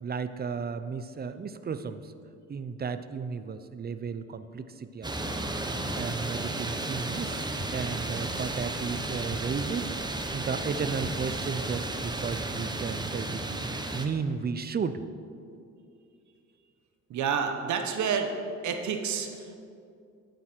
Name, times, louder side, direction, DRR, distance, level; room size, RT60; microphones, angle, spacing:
voice 1, 0.0-2.1 2.5-5.4 5.9-9.9 10.3-13.4 13.9-15.0, right 5 dB, 30° right, 11 dB, 0.6 m, -34 dB
sound 1, 5.0-14.1, right 2 dB, 15° right, 1.0 m, -33 dB
sound 2, 5.4-5.5 5.9-6.0 7.2-7.3 7.6-7.7 8.9-9.0 9.3-9.4 10.6-10.7 11.0-11.1 12.3-12.4, left 2 dB, 30° left, 1.6 m, -41 dB
voice 2, 17.1-18.3 18.6-19.6, right 6 dB, 70° right, 5 dB, 1.2 m, -29 dB
11.0 x 9.1 x 4.5 m, 2.4 s
cardioid pair, 90°, 30 cm